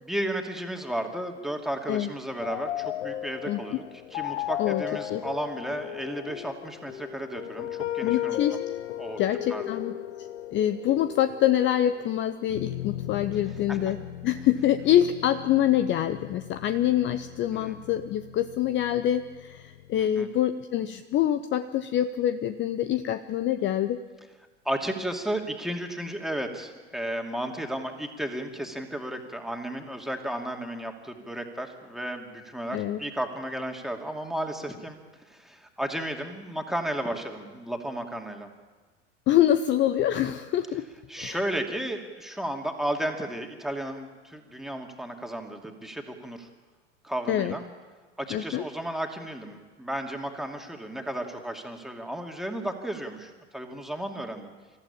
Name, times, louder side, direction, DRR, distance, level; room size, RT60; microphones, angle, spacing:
voice 1, 0.1-3.8 4.1-8.4 9.0-9.2 9.5-9.7 13.7-14.0 17.5-17.8 19.9-20.3 24.6-35.0 35.3-38.5 41.1-46.5 47.0-47.7 48.2-54.5, right 1 dB, ahead, 3 dB, 2.5 m, -33 dB
sound 1, 2.4-20.1, left 13 dB, 60° left, 1.0 m, -36 dB
voice 2, 3.5-3.8 4.6-4.8 5.1-5.2 8.0-8.6 9.2-14.0 14.2-24.0 32.7-33.0 39.3-40.9 41.2-41.4 47.3-47.5 48.3-48.6, left 11 dB, 30° left, 11 dB, 0.8 m, -25 dB
27.0 x 14.5 x 8.7 m, 1.4 s
figure-of-eight pair, 80°, 36 cm